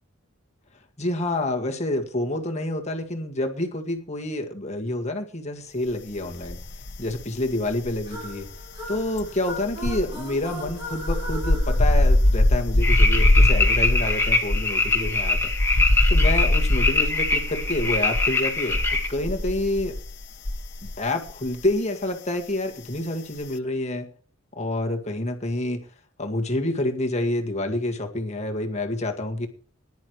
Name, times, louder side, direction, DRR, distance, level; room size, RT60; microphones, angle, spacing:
voice 1, 1.0-6.6 7.0-8.5 8.9-15.5 16.1-20.0 20.8-24.1 24.5-25.9 26.2-29.5, left 1 dB, 35° left, 3 dB, 1.9 m, -28 dB
sound 1, 6.4-7.2 7.5-21.0 21.3-21.6, left 1 dB, 55° left, 1.3 m, -22 dB
sound 2, 8.0-12.8, equal, 25° right, 7.8 m, -38 dB
sound 3, 12.8-19.1, left 3 dB, 10° left, 2.1 m, -24 dB
19.5 x 11.0 x 3.1 m, 0.41 s
head